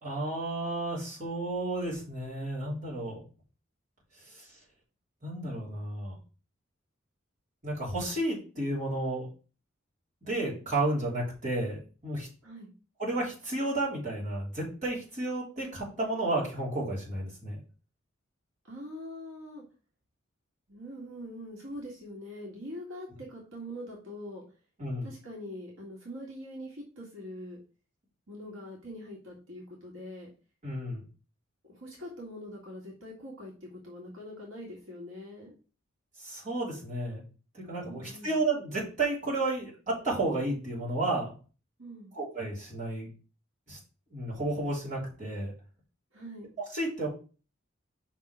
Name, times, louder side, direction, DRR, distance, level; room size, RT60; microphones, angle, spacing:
voice 1, 0.0-3.2 4.3-4.5 5.2-6.2 7.6-9.3 10.3-12.3 13.0-17.6 24.8-25.1 30.6-31.0 36.2-37.2 37.5-41.3 42.2-43.1 43.7-43.8 44.1-45.5 46.7-47.1, right 2 dB, 35° right, -6 dB, 3.7 m, -32 dB
voice 2, 18.6-19.6 20.7-24.4 25.0-27.6 28.3-30.3 31.6-35.5 37.9-38.4 41.8-42.1 46.1-46.5, equal, 75° right, -3 dB, 2.0 m, -43 dB
5.9 x 3.8 x 6.0 m, 0.36 s
head